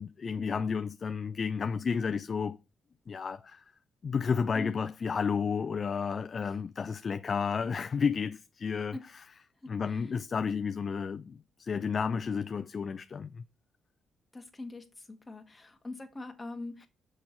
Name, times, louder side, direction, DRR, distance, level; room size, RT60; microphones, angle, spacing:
voice 1, 0.0-2.6 3.1-3.6 4.0-9.3 9.7-13.4, left 6 dB, 40° left, 0.4 m, -32 dB
voice 2, 14.3-16.9, left 2 dB, 20° left, 1.5 m, -43 dB
6.6 x 5.5 x 4.4 m
cardioid pair, 90°, 0 cm